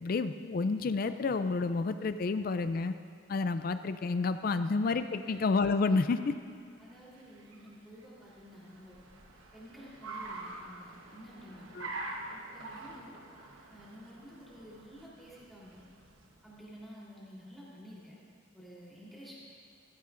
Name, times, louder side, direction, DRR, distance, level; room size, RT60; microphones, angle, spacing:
voice 1, 0.0-2.9 3.3-6.3 11.8-11.9, left 4 dB, 45° left, 11 dB, 0.3 m, -30 dB
Car, 6.5-16.7, right 2 dB, 75° right, 1.2 m, -46 dB
voice 2, 6.8-9.0 9.5-11.7 12.3-13.2 13.7-15.8 16.4-18.1 18.5-19.4, equal, ahead, -8 dB, 3.5 m, -51 dB
17.5 x 16.0 x 2.5 m, 2.3 s
head